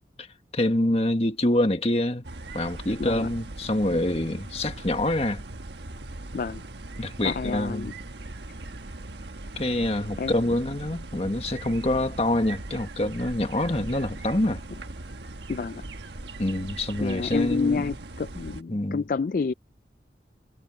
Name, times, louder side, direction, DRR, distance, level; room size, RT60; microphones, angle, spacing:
voice 1, 0.5-2.2 2.5-5.4 7.0-7.9 9.6-14.6 16.4-18.0 18.7-19.0, left 1 dB, 35° left, 1.6 m, -26 dB
sound 1, 2.2-18.6, right 2 dB, 80° right, 1.3 m, -39 dB
voice 2, 7.2-7.9 10.2-10.3 15.5-15.8 17.0-19.5, left 5 dB, 50° left, 0.4 m, -29 dB
head